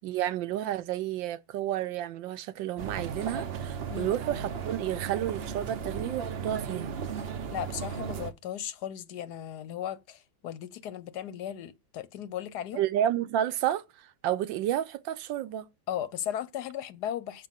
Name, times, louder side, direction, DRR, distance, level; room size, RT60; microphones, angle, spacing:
voice 1, 0.0-6.9 12.7-13.8 14.2-15.7, right 11 dB, 85° right, 1.4 m, -31 dB
sound 1, 2.8-8.3, right 6 dB, 60° right, 0.6 m, -36 dB
voice 2, 7.5-12.8 15.9-17.5, left 10 dB, 70° left, 1.1 m, -36 dB
7.7 x 5.1 x 7.3 m
omnidirectional pair, 2.0 m